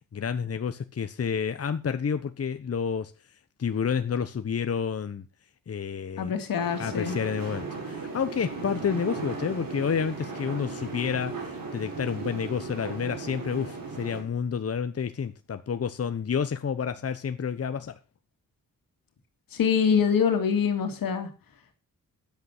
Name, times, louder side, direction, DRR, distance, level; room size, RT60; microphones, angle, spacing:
voice 1, 0.1-3.1 3.6-5.2 5.7-6.3 6.8-18.0, left 7 dB, 45° left, 1.0 m, -30 dB
voice 2, 6.2-7.2 19.5-21.3, left 7 dB, 85° left, 2.4 m, -24 dB
sound 1, 6.6-14.2, right 4 dB, 80° right, 5.6 m, -36 dB
10.5 x 8.2 x 6.0 m
cardioid pair, 60°, 34 cm